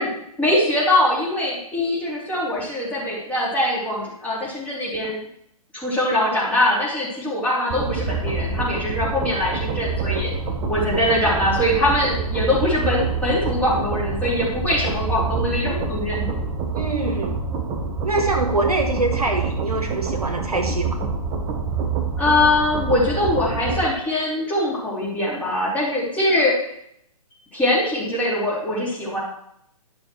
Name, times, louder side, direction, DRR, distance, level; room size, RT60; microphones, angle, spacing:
voice 1, 0.0-5.2 5.7-10.3 10.7-16.3 22.2-26.6 27.5-29.2, left 1 dB, 10° left, -6 dB, 3.5 m, -22 dB
sound 1, 7.7-23.8, right 4 dB, 20° right, 1.1 m, -26 dB
voice 2, 16.7-17.4 18.0-21.0, right 2 dB, 80° right, 2 dB, 2.0 m, -24 dB
11.5 x 6.4 x 4.6 m, 0.72 s
figure-of-eight pair, 125°, 19 cm